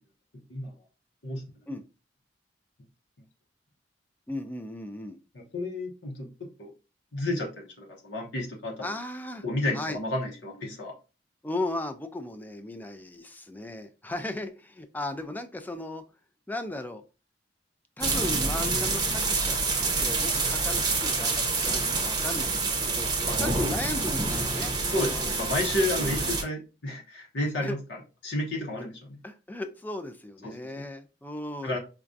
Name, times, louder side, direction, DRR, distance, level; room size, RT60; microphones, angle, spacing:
voice 1, 4.3-5.2 8.8-9.5 9.7-10.0 11.4-16.0 16.5-17.0 18.0-19.6 20.0-23.1 23.4-25.4 27.6-27.8 28.8-28.9 29.2-31.8, left 2 dB, 10° left, 8 dB, 0.4 m, -36 dB
voice 2, 5.5-6.7 7.1-8.9 9.4-10.9 23.3-23.5 24.9-27.8 28.2-29.2 30.4-30.5 31.6-31.8, left 1 dB, 80° left, -2 dB, 0.9 m, -31 dB
sound 1, 18.0-26.4, right 3 dB, 20° right, 0.7 m, -27 dB
4.8 x 2.3 x 2.6 m, 0.32 s
head